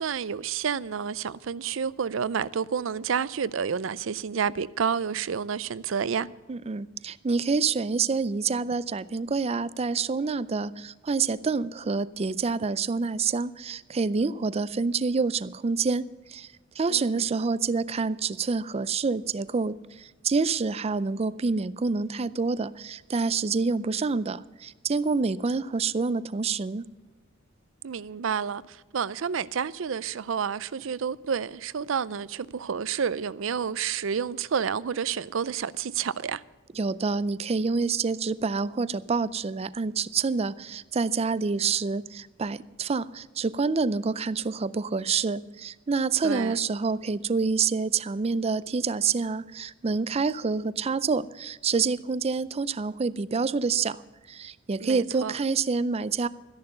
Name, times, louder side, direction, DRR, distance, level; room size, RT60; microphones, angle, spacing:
voice 1, 0.0-6.3 16.9-17.2 27.8-36.4 46.2-46.6 54.8-55.4, right 7 dB, 90° right, 0.5 m, -29 dB
voice 2, 6.5-16.5 16.8-26.8 36.8-54.0 54.3-56.3, right 4 dB, 30° right, 0.4 m, -27 dB
13.5 x 10.5 x 6.7 m
head